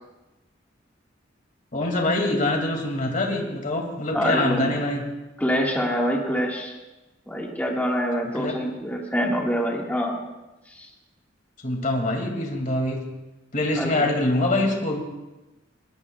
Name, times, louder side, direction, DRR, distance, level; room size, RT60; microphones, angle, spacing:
voice 1, 1.7-5.0 8.3-8.6 11.6-13.1 13.5-15.0, left 2 dB, 45° left, 2 dB, 2.5 m, -24 dB
voice 2, 4.1-4.7 5.4-6.7 7.3-10.2 10.7-10.9 13.7-14.0, equal, 10° left, -2 dB, 1.8 m, -25 dB
22.0 x 19.0 x 2.4 m, 1.0 s
head